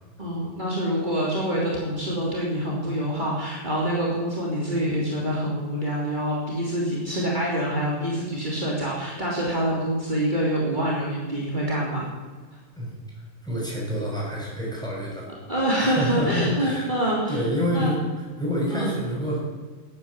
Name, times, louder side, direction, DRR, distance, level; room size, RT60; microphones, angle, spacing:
voice 1, 0.2-12.1 15.5-17.4 17.7-17.9 18.7-18.9, right 1 dB, 35° right, -4 dB, 3.2 m, -26 dB
voice 2, 12.8-15.3 15.8-19.4, equal, 5° left, -4 dB, 6.4 m, -28 dB
14.0 x 9.8 x 9.6 m, 1.5 s
omnidirectional pair, 1.4 m